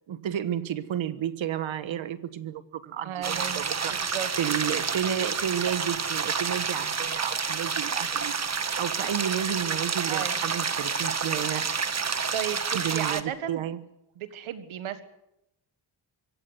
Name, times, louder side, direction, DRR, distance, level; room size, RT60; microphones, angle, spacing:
voice 1, 0.1-8.4 8.7-11.7 12.7-13.8, right 10 dB, 75° right, 13 dB, 1.4 m, -32 dB
voice 2, 3.0-4.3 10.1-10.4 12.3-13.6 14.2-15.0, right 10 dB, 90° right, 11 dB, 1.7 m, -34 dB
sound 1, 3.2-13.2, right 5 dB, 35° right, 1.5 m, -29 dB
24.5 x 16.5 x 8.0 m, 0.85 s
cardioid pair, 85°, 47 cm